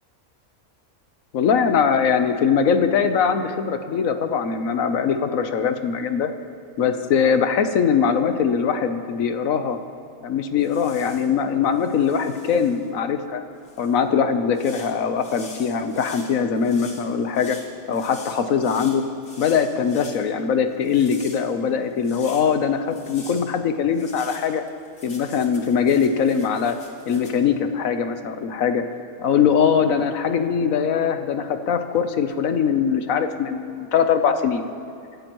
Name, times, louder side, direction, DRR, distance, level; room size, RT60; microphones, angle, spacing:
voice 1, 1.3-6.3 6.8-9.8 10.2-13.4 13.8-17.6 17.9-19.0 19.4-24.6 25.0-26.8 27.1-28.8 29.2-34.6, left 7 dB, 70° left, 8 dB, 1.3 m, -21 dB
sound 1, 10.6-11.3 11.7-12.9 13.6-13.9 14.5-20.2 20.7-22.5 22.9-23.5 23.9-27.3, left 3 dB, 85° left, 2.4 m, -44 dB
25.5 x 14.5 x 3.1 m, 2.5 s
omnidirectional pair, 1.5 m